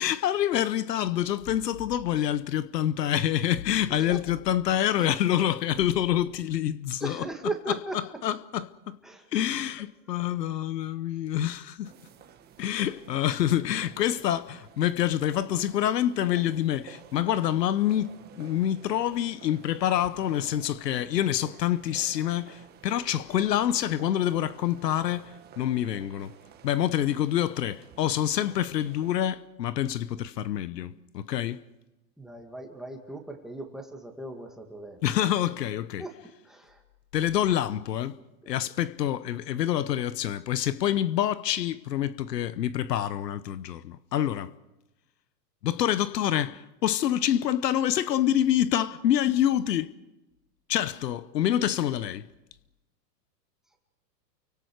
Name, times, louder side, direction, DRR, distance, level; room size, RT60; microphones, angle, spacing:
voice 1, 0.0-9.0 9.3-11.9 12.6-26.3 26.6-31.6 35.0-36.1 37.1-38.2 38.5-44.5 45.6-49.9 50.7-52.3, left 11 dB, 80° left, 1.1 m, -27 dB
voice 2, 3.9-4.2 7.0-8.0 9.0-9.2 9.5-9.6 10.1-10.3 32.2-35.3 36.0-36.2 36.4-36.8 38.4-38.6, right 2 dB, ahead, 2.2 m, -38 dB
sound 1, 11.8-29.3, right 9 dB, 20° right, 1.6 m, -52 dB
29.5 x 24.5 x 4.8 m
hypercardioid pair, 150°, 49 cm